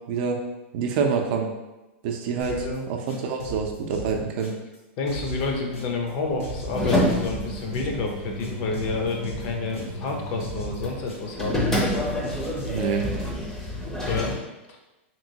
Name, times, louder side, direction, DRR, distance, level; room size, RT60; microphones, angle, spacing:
voice 1, 0.7-1.5 2.0-4.5 12.7-13.0, right 5 dB, 50° right, 3 dB, 0.5 m, -26 dB
sound 1, 2.4-2.8 3.1-4.8 5.1-6.1 6.4-8.1 8.4-10.1 10.4-11.4 11.7-12.9, right 1 dB, 90° left, 0.9 m, -37 dB
voice 2, 2.5-2.8 5.0-11.6 13.9-14.3, left 3 dB, 45° left, 2 dB, 0.6 m, -29 dB
sound 2, 5.1-14.4, left 1 dB, 5° left, 0.6 m, -29 dB
2.9 x 2.8 x 2.7 m, 1.0 s
hypercardioid pair, 140°, 7 cm